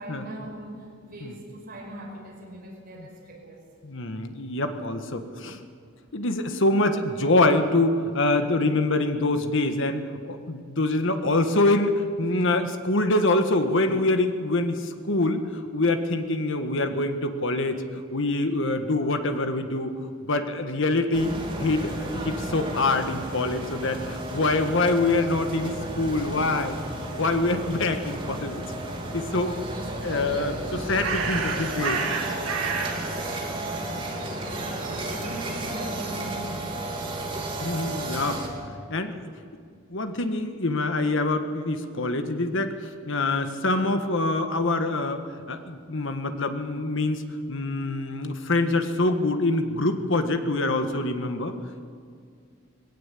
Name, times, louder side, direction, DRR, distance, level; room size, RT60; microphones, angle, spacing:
voice 1, 0.0-3.7 31.2-31.5 32.9-34.2 34.6-36.7, right 1 dB, 45° right, 0 dB, 5.4 m, -41 dB
voice 2, 3.8-5.6 6.1-26.8 27.2-28.6 28.9-32.0 37.6-38.4 38.9-39.1 39.9-47.2 47.5-51.5, left 2 dB, 65° left, 7 dB, 1.6 m, -25 dB
sound 1, 21.1-38.5, right 1 dB, 25° right, 2.9 m, -33 dB
Bird, 30.5-36.5, right 4 dB, 90° right, 2.4 m, -33 dB
20.0 x 17.0 x 8.5 m, 2.2 s
head